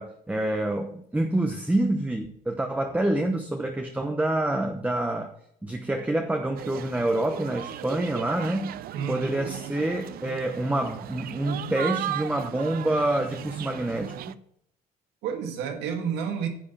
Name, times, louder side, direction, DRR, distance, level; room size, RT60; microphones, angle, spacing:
voice 1, 0.0-5.3 5.6-8.8 9.1-14.4, right 1 dB, 10° right, 4 dB, 1.0 m, -27 dB
sound 1, 6.6-14.3, right 12 dB, 65° right, 0.5 m, -37 dB
voice 2, 8.9-9.7 15.2-16.5, right 7 dB, 90° right, 4 dB, 1.9 m, -31 dB
10.5 x 6.9 x 5.7 m, 0.71 s
cardioid pair, 110°, 17 cm